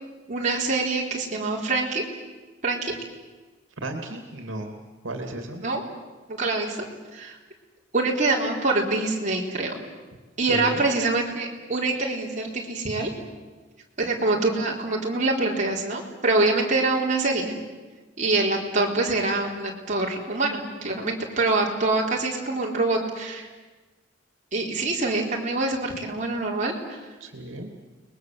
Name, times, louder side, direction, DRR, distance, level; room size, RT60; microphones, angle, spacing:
voice 1, 0.3-2.0 2.6-2.9 5.6-5.8 6.3-6.8 7.1-7.4 7.9-9.7 10.4-13.1 14.0-17.6 18.2-23.5 24.5-27.1, right 3 dB, 40° right, -2 dB, 4.2 m, -25 dB
voice 2, 3.8-4.7 5.0-5.6 10.5-10.9 27.2-27.7, right 1 dB, 80° right, 4 dB, 2.7 m, -34 dB
30.0 x 21.5 x 7.7 m, 1.3 s
head